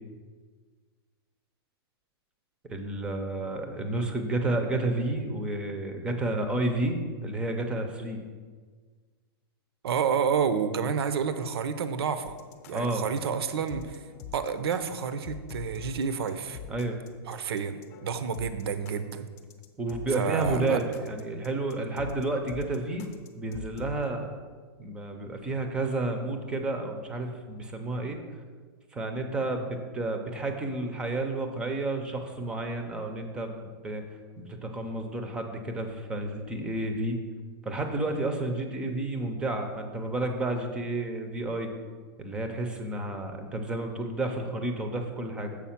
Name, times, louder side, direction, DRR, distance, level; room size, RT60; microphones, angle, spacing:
voice 1, 2.7-7.0 7.2-8.2 12.7-13.0 16.7-17.2 19.8-23.1 23.3-24.3 24.8-28.2 28.9-34.0 34.4-37.2 37.6-41.7 42.2-45.6, right 2 dB, 5° right, 5 dB, 0.5 m, -31 dB
voice 2, 9.8-12.3 12.7-14.0 14.3-16.6 17.3-19.3 20.1-20.8, right 6 dB, 75° right, 11 dB, 0.6 m, -29 dB
sound 1, 12.3-24.0, left 7 dB, 35° left, 0.7 m, -45 dB
7.3 x 4.8 x 5.8 m, 1.5 s
supercardioid pair, 170°, 13 cm